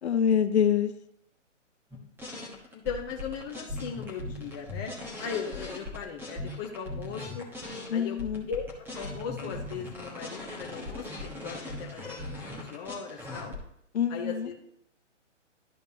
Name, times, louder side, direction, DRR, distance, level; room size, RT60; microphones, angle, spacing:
voice 1, 0.0-0.9 7.9-8.5 13.9-14.5, left 8 dB, 60° left, 8 dB, 0.9 m, -25 dB
sound 1, 1.9-7.9 8.2-13.6, left 2 dB, 5° right, 1.2 m, -39 dB
voice 2, 2.7-4.9 5.2-7.5 7.9-8.2 8.5-8.6 8.9-13.5 14.1-14.5, left 6 dB, 15° left, -1 dB, 0.5 m, -38 dB
12.5 x 5.2 x 2.8 m, 0.74 s
hypercardioid pair, 140°, 37 cm